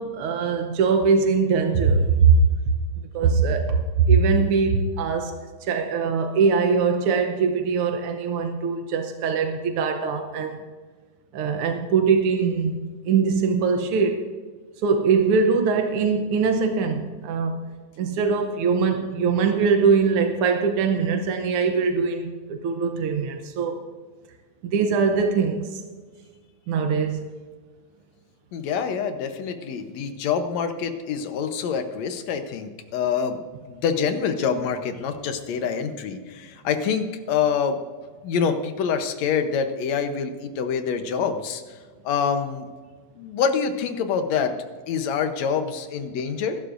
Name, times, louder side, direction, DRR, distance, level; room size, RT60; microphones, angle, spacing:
voice 1, 0.0-2.4 3.1-10.6 11.3-12.8 13.0-14.3 14.8-17.6 18.0-23.8 24.7-25.8 26.7-27.2, right 5 dB, 75° right, 1.3 m, -22 dB
voice 2, 28.5-33.4 33.7-37.8 38.2-41.8 42.1-42.7 43.2-44.5 44.9-46.6, left 6 dB, 70° left, 2.1 m, -26 dB
21.5 x 11.5 x 2.6 m
omnidirectional pair, 3.4 m